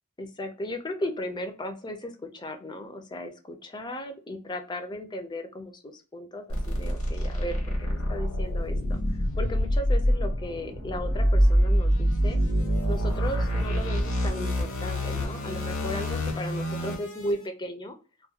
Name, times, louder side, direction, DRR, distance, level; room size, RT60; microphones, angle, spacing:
voice 1, 0.2-12.4 12.9-17.9, left 1 dB, 20° left, 6 dB, 0.4 m, -36 dB
sound 1, 6.5-17.3, equal, 90° left, 0.9 m, -26 dB
sound 2, 8.6-12.3, right 1 dB, 55° right, 0.6 m, -45 dB
2.4 x 2.2 x 2.7 m, 0.35 s
head